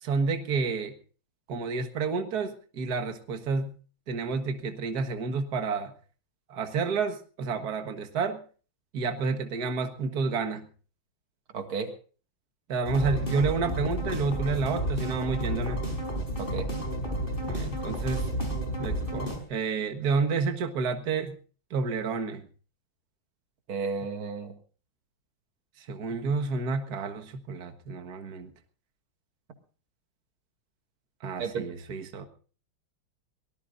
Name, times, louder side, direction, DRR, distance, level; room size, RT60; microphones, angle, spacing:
voice 1, 0.0-0.9 1.5-3.7 4.1-5.9 6.5-8.4 8.9-10.6 12.7-15.8 17.5-18.2 18.8-21.4 21.7-22.4 25.8-28.5 31.2-32.3, right 4 dB, 50° right, 6 dB, 1.9 m, -30 dB
voice 2, 11.5-11.9 16.4-16.7 23.7-24.5 31.4-31.6, right 5 dB, 85° right, 5 dB, 3.0 m, -32 dB
sound 1, 12.9-19.4, right 1 dB, 25° left, 5.2 m, -31 dB
23.5 x 19.5 x 2.6 m, 0.39 s
omnidirectional pair, 2.2 m